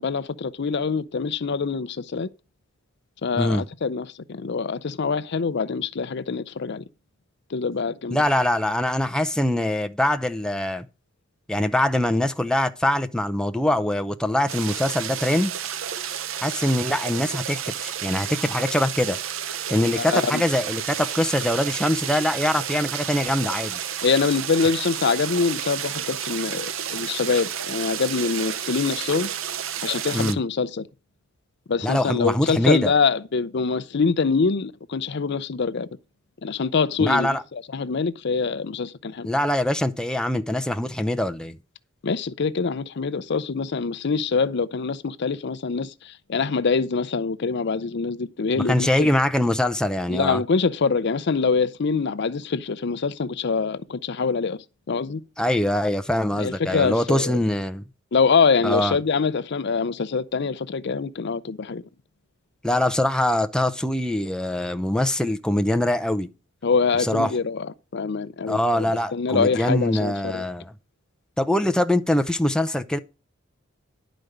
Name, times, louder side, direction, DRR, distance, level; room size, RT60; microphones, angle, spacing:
voice 1, 0.0-2.3 3.2-6.8 7.5-8.2 20.0-20.4 24.0-29.3 29.8-30.9 31.7-35.9 36.4-39.3 42.0-49.1 50.1-54.6 54.9-55.2 56.4-57.4 58.1-61.8 66.6-67.7 67.9-68.9 69.1-70.4, left 5 dB, 55° left, 0.5 m, -24 dB
voice 2, 8.1-10.9 11.5-15.5 16.4-19.2 19.7-23.8 30.1-30.4 31.8-32.9 37.0-37.4 39.2-41.6 48.6-50.4 55.4-57.8 58.6-59.0 62.6-66.3 67.0-67.3 68.5-70.7 71.4-73.0, left 1 dB, 5° left, 0.6 m, -23 dB
sound 1, 14.5-30.3, right 9 dB, 75° right, 0.8 m, -31 dB
11.0 x 5.1 x 7.9 m
head